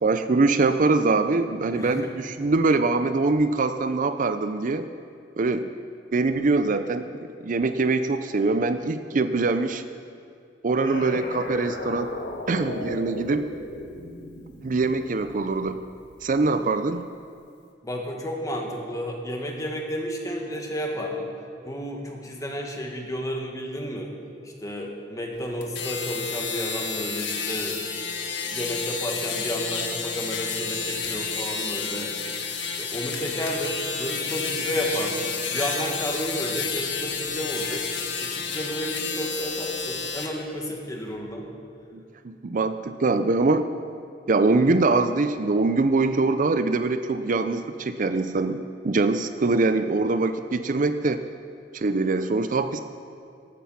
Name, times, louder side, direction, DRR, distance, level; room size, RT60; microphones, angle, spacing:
voice 1, 0.0-4.9 5.4-5.7 6.1-9.8 10.6-12.1 12.5-13.5 14.6-15.8 16.2-17.1 41.9-43.7 44.3-51.2 51.7-52.8, right 3 dB, 45° right, 10 dB, 0.5 m, -23 dB
sound 1, 10.8-16.2, left 1 dB, 65° left, 1.8 m, -36 dB
voice 2, 17.8-21.3 21.6-24.1 24.6-27.8 28.4-32.1 32.8-37.8 38.2-41.4, equal, 20° left, 1 dB, 1.9 m, -31 dB
sound 2, 25.6-40.3, left 5 dB, 85° left, 1.7 m, -30 dB
14.5 x 13.0 x 5.8 m, 2.4 s
head